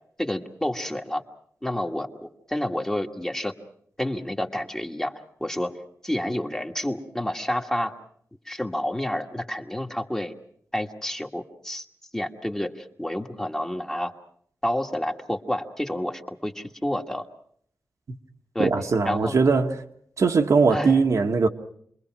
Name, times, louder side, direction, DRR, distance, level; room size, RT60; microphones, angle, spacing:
voice 1, 0.2-1.2 1.6-3.5 4.0-5.7 6.0-7.9 8.4-10.3 10.7-11.8 12.1-14.1 14.6-17.3 18.5-18.7 19.0-19.4 20.7-21.0, left 1 dB, 10° left, 1.6 m, -29 dB
voice 2, 18.6-19.8 20.2-21.5, right 4 dB, 60° right, 1.4 m, -20 dB
28.5 x 22.0 x 6.0 m
wide cardioid pair, 120°, 6 cm